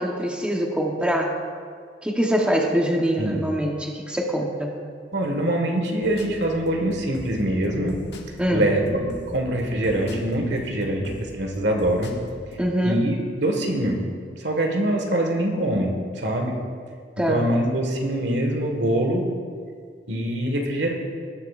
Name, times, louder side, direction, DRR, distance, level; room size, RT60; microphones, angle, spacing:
voice 1, 0.0-1.4 2.0-4.7 8.4-8.7 12.6-13.1 17.2-17.5, equal, 5° right, 0 dB, 1.0 m, -24 dB
voice 2, 5.1-8.0 8.5-12.1 12.8-14.0 14.4-16.6 17.2-19.3 20.1-20.9, right 1 dB, 75° right, 2 dB, 1.7 m, -24 dB
sound 1, 6.0-12.7, equal, 65° left, 1.5 m, -41 dB
18.5 x 10.5 x 2.5 m, 2.1 s
head